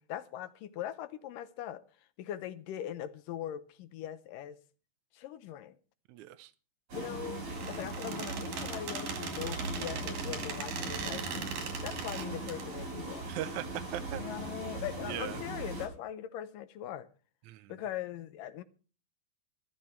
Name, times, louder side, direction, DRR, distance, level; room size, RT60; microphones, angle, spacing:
voice 1, 0.0-1.8 2.2-4.6 5.1-5.8 6.9-11.3 11.8-13.3 14.2-17.1 17.7-18.6, left 11 dB, 90° left, 2.5 m, -41 dB
voice 2, 6.1-6.5 13.3-14.2 15.0-15.4 17.5-17.7, right 13 dB, 75° right, 2.1 m, -39 dB
sound 1, 6.9-15.9, right 2 dB, 50° right, 6.8 m, -39 dB
Squeak, 7.5-12.6, right 6 dB, 90° right, 3.9 m, -40 dB
14.0 x 13.5 x 4.5 m
omnidirectional pair, 3.7 m